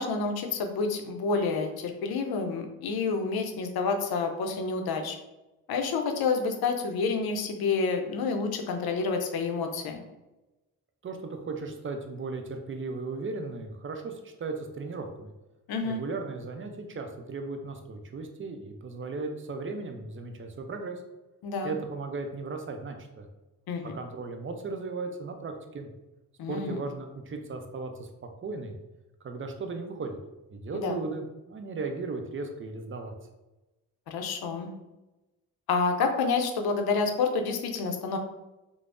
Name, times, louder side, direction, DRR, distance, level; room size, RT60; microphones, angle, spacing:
voice 1, 0.0-5.2 5.7-10.0 15.7-16.0 21.4-21.7 23.7-23.9 26.4-26.8 30.7-31.0 34.1-34.7 35.7-38.2, left 4 dB, 70° left, 5 dB, 0.5 m, -29 dB
voice 2, 11.0-15.3 15.8-21.0 21.6-23.3 23.8-25.9 26.5-28.1 28.4-28.7 29.2-30.2 30.5-33.1, right 3 dB, 35° right, 5 dB, 0.5 m, -36 dB
3.2 x 2.0 x 2.5 m, 1.0 s
supercardioid pair, 50°, 38 cm